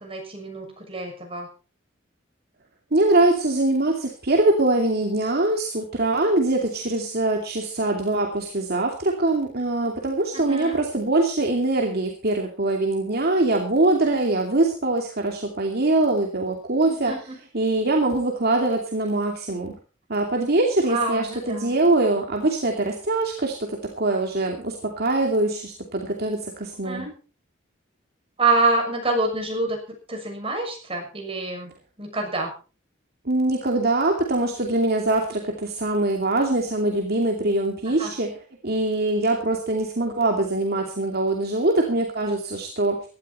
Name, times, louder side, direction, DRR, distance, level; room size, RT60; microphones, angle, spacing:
voice 1, 0.0-1.5 10.3-10.8 16.9-17.4 20.9-21.7 26.8-27.1 28.4-29.8 30.1-31.7 32.0-32.5 37.9-38.1, right 3 dB, 30° right, 2 dB, 6.7 m, -26 dB
voice 2, 2.9-17.1 17.5-19.7 20.1-27.1 33.2-38.4 38.6-43.0, right 2 dB, 55° right, 2 dB, 2.6 m, -23 dB
17.5 x 13.0 x 4.3 m, 0.37 s
head